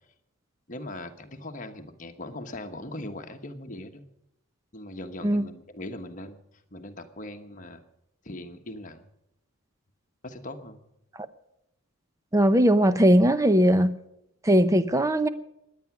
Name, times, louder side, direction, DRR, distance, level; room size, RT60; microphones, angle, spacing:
voice 1, 0.7-4.0 4.7-6.4 6.7-7.8 8.2-9.0 10.2-10.8, left 1 dB, 35° left, 5 dB, 1.2 m, -40 dB
voice 2, 12.3-14.0 14.4-15.3, equal, 15° right, 11 dB, 0.7 m, -19 dB
23.0 x 9.4 x 6.1 m, 0.83 s
head